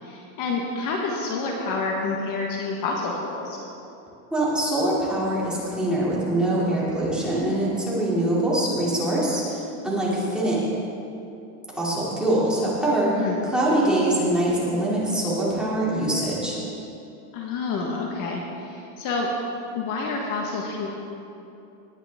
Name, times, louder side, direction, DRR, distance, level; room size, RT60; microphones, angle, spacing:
voice 1, 0.0-3.6 13.0-13.4 17.3-19.3 19.7-20.9, left 4 dB, 45° left, -1 dB, 1.5 m, -28 dB
voice 2, 4.3-10.6 11.7-13.1 13.4-16.6, right 1 dB, ahead, -8 dB, 2.8 m, -23 dB
19.0 x 10.0 x 3.6 m, 2.7 s
supercardioid pair, 155°, 46 cm